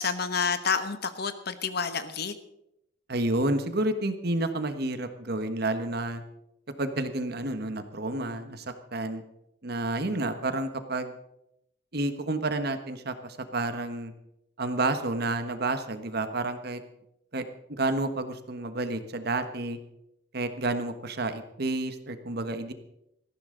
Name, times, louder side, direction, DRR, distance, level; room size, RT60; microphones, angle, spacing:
voice 1, 0.0-2.3, left 5 dB, 60° left, 11 dB, 1.2 m, -29 dB
voice 2, 3.1-6.2 6.8-9.2 9.6-11.1 11.9-14.1 14.6-16.8 17.3-19.8 20.3-22.7, right 2 dB, 60° right, 9 dB, 1.4 m, -30 dB
18.5 x 14.5 x 3.9 m, 0.81 s
head